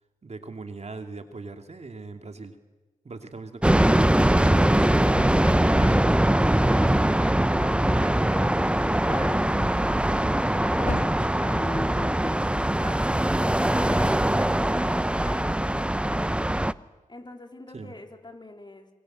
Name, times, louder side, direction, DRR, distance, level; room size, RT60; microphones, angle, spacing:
voice 1, 0.2-2.6 3.0-5.3 5.7-6.0 17.7-17.9, right 3 dB, 50° right, 6 dB, 2.7 m, -40 dB
sound 1, 3.6-16.7, right 1 dB, 5° right, 0.8 m, -22 dB
voice 2, 4.6-6.0 6.4-10.6 11.4-16.2 17.1-18.9, left 2 dB, 30° left, 4 dB, 4.0 m, -42 dB
sound 2, 10.6-13.3, left 3 dB, 60° left, 4.1 m, -43 dB
26.0 x 21.5 x 7.9 m, 1.2 s
cardioid pair, 50°, 15 cm